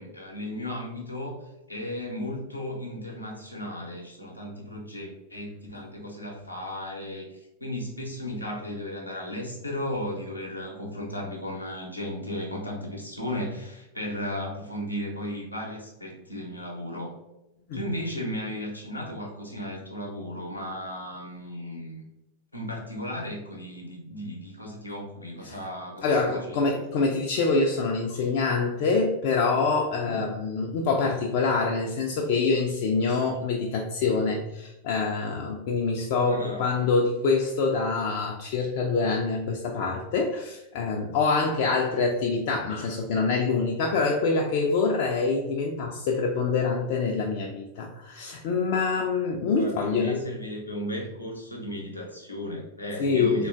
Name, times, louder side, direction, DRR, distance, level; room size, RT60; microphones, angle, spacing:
voice 1, 0.0-17.1 17.7-22.0 22.5-26.1 26.3-26.8 30.0-30.2 36.3-36.7 49.6-53.5, left 1 dB, 85° left, -1 dB, 0.7 m, -35 dB
voice 2, 26.0-50.2 53.0-53.5, left 4 dB, 50° left, 0 dB, 0.3 m, -25 dB
3.6 x 2.2 x 2.4 m, 0.95 s
figure-of-eight pair, 90°, 0 cm